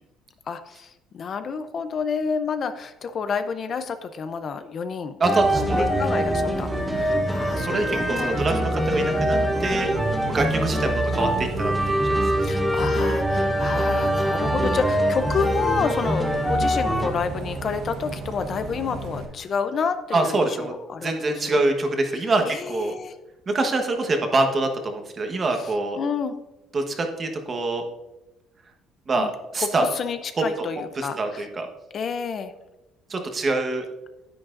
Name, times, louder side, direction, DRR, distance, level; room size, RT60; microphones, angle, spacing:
voice 1, 0.5-5.2 5.6-8.5 8.8-9.3 12.4-21.6 22.2-23.1 25.6-25.7 26.0-26.3 29.1-29.3 29.6-31.5 31.9-32.5, left 5 dB, 45° left, 10 dB, 0.5 m, -29 dB
sound 1, 5.2-17.1, equal, ahead, 0.9 m, -24 dB
voice 2, 5.2-5.8 7.6-9.9 10.3-12.3 20.1-20.7 21.0-23.0 23.5-26.0 26.7-27.9 29.1-29.9 30.6-30.7 31.0-31.7 33.1-33.9, right 2 dB, 30° right, 4 dB, 1.2 m, -25 dB
Bus, 5.4-19.3, right 3 dB, 65° right, 1.3 m, -34 dB
9.8 x 8.7 x 2.5 m, 0.99 s
cardioid pair, 120°, 0 cm